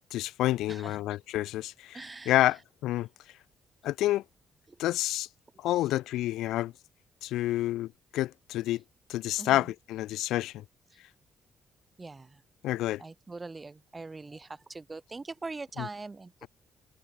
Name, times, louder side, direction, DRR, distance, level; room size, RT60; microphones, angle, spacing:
voice 1, 0.1-2.0 2.3-3.1 3.8-4.2 4.8-5.3 5.6-6.7 7.2-8.8 9.1-10.6 12.6-13.0 15.8-15.9, left 15 dB, 90° left, 0.4 m, -29 dB
voice 2, 1.9-2.4 4.7-4.8 9.4-9.7 12.0-12.4 13.0-16.3, right 3 dB, 25° right, 1.2 m, -42 dB
cardioid pair, 90°, 0 cm